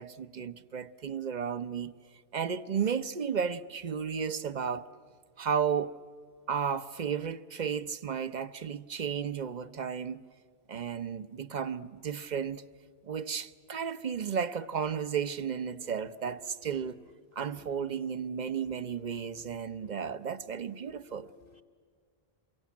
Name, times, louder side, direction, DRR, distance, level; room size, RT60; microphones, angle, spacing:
voice 1, 0.0-1.9 2.3-4.9 5.4-6.0 6.5-10.2 10.7-12.6 13.0-17.0 17.4-21.3, right 7 dB, 45° right, 0.9 m, -33 dB
voice 2, 16.3-21.6, left 5 dB, 60° left, 1.3 m, -60 dB
28.0 x 23.5 x 8.5 m
omnidirectional pair, 1.0 m